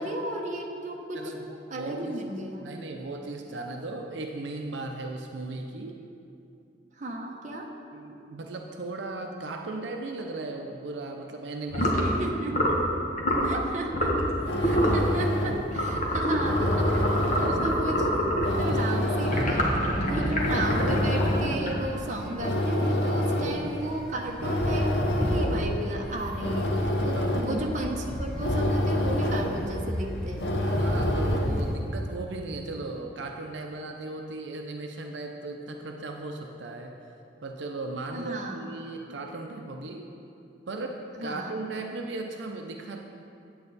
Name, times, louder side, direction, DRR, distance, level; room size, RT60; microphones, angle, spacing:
voice 1, 0.0-1.3 1.7-2.7 7.0-7.7 12.0-12.8 13.4-14.2 14.6-16.9 17.4-18.1 18.6-19.7 20.0-30.5 38.1-38.7 41.2-41.5, right 1 dB, 40° right, 1 dB, 0.8 m, -34 dB
voice 2, 1.1-2.2 2.6-6.0 7.9-12.2 15.9-16.2 17.4-17.8 18.6-19.7 27.2-27.5 30.6-36.9 37.4-40.1 40.7-43.0, right 2 dB, 75° right, 2 dB, 0.6 m, -37 dB
sound 1, 11.7-12.1 12.5-12.8 13.2-13.5 13.9-14.3 14.6-15.0 15.7-18.6 19.2-22.1, equal, 45° left, 1.2 m, -26 dB
sound 2, 14.2-31.8, left 1 dB, 65° left, 0.8 m, -29 dB
sound 3, 18.9-20.6 21.1-21.4 22.0-22.6 22.9-23.0 23.3-23.4 23.5-31.7, equal, 5° left, 0.6 m, -34 dB
8.9 x 8.6 x 4.1 m, 2.7 s
head